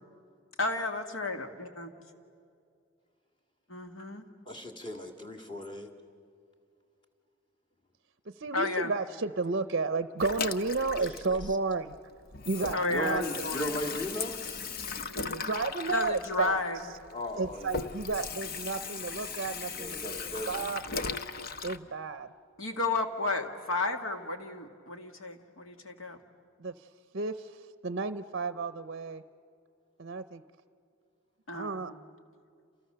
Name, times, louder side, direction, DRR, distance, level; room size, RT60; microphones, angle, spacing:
voice 1, 0.6-1.9 3.7-4.2 8.5-8.9 12.7-13.8 15.9-16.8 22.6-26.2 31.5-32.0, left 3 dB, 70° left, 5 dB, 2.0 m, -32 dB
voice 2, 4.5-5.9 11.0-11.4 12.9-14.4 17.1-18.0 19.8-20.7, left 1 dB, 20° left, 2 dB, 2.1 m, -37 dB
voice 3, 8.3-11.9 12.4-13.2 15.2-16.6 17.4-20.2 20.5-20.8 21.6-22.3 26.6-26.9 27.1-29.2 30.0-30.4 31.5-31.9, right 4 dB, 50° right, 12 dB, 0.6 m, -32 dB
Water tap faucet / Sink (filling or washing), 10.2-12.0 12.3-21.8, left 4 dB, 45° left, 0.8 m, -37 dB
29.5 x 28.0 x 6.8 m, 2.5 s
head